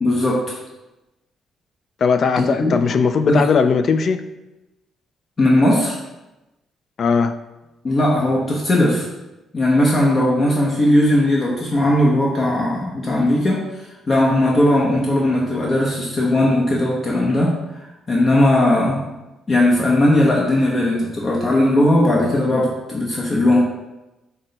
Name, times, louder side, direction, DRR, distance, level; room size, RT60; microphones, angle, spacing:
voice 1, 0.0-0.6 2.4-2.7 3.2-3.4 5.4-5.9 7.8-9.1 9.5-13.6 14.1-19.0 19.5-23.6, left 1 dB, 35° left, -3 dB, 0.8 m, -18 dB
voice 2, 2.0-4.2 7.0-7.3, left 5 dB, 55° left, 10 dB, 0.3 m, -18 dB
6.0 x 2.2 x 3.9 m, 1.0 s
cardioid pair, 90°, 0 cm